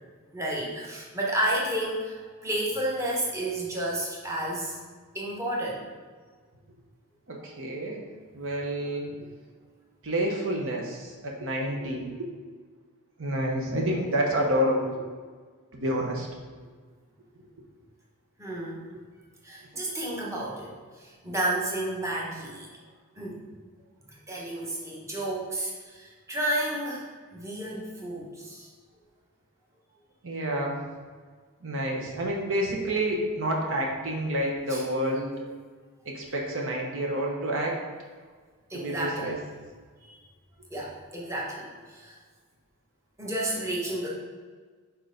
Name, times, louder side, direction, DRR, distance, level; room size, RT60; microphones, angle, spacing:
voice 1, 0.3-4.8 5.1-5.8 18.4-18.8 19.4-22.7 23.2-23.4 24.1-28.7 34.7-34.8 38.7-39.4 40.0-40.2 40.7-42.1 43.2-44.1, right 1 dB, 15° right, -4 dB, 1.1 m, -31 dB
voice 2, 7.3-8.0 8.3-9.2 10.0-12.3 13.2-15.0 15.7-16.3 30.2-30.8 31.6-35.3 36.0-37.8 38.7-39.4, right 1 dB, 60° right, 0 dB, 1.0 m, -29 dB
4.5 x 4.4 x 5.1 m, 1.5 s
head